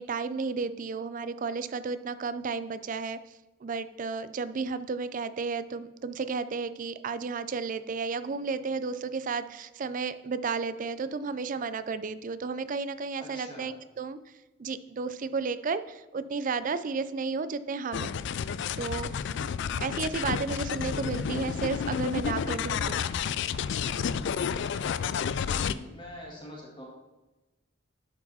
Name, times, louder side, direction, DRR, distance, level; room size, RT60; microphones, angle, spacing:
voice 1, 0.0-3.2 3.6-14.2 14.6-18.1 18.8-19.2 19.8-23.0, right 4 dB, 40° right, 14 dB, 0.4 m, -33 dB
voice 2, 13.2-13.7 25.5-26.8, left 1 dB, 25° left, -2 dB, 1.8 m, -44 dB
sound 1, 17.9-25.7, left 7 dB, 65° left, 0.3 m, -31 dB
11.5 x 4.8 x 4.1 m, 1.1 s
head